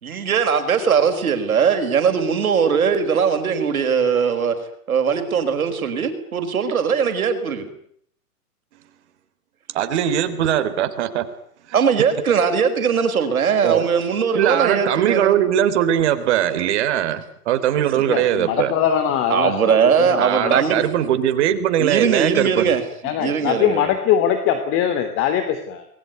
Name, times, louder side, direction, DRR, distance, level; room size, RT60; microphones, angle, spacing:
voice 1, 0.0-4.6 4.9-7.7 11.7-15.4 17.9-18.2 19.3-21.1 21.8-22.8 23.1-23.9, right 6 dB, 65° right, 8 dB, 5.3 m, -20 dB
voice 2, 9.7-11.3 13.6-13.9 14.3-18.7 20.2-22.7, right 10 dB, 45° right, 11 dB, 3.8 m, -20 dB
voice 3, 18.1-19.5 20.0-20.6 23.0-25.9, left 9 dB, 25° left, 8 dB, 3.0 m, -21 dB
28.0 x 21.0 x 9.5 m, 0.67 s
figure-of-eight pair, 120°, 46 cm